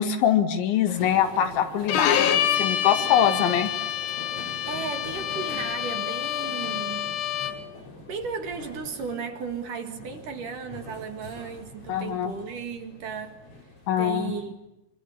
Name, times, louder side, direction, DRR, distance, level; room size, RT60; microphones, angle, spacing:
voice 1, 0.0-3.7 11.9-12.3 13.9-14.3, left 9 dB, 85° left, 4.4 m, -23 dB
sound 1, 0.8-14.5, left 1 dB, 30° left, 5.7 m, -43 dB
Bowed string instrument, 1.9-7.7, left 10 dB, 70° left, 3.5 m, -27 dB
voice 2, 4.7-7.1 8.0-13.4 14.0-14.5, right 6 dB, 55° right, 3.2 m, -35 dB
26.0 x 25.5 x 8.6 m
omnidirectional pair, 5.1 m